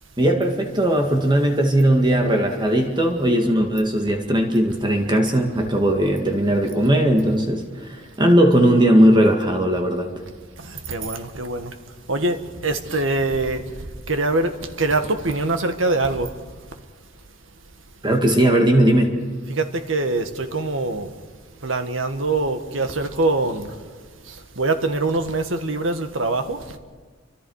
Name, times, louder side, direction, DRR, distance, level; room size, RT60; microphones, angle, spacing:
voice 1, 0.2-10.1 18.0-19.1, right 1 dB, 25° right, 2.0 m, -18 dB
voice 2, 10.6-11.7 12.1-12.4 12.6-13.6 14.1-14.5 14.8-16.3 19.5-21.1 21.6-23.7 24.3-26.6, right 2 dB, 80° right, 1.8 m, -23 dB
29.5 x 25.0 x 4.9 m
head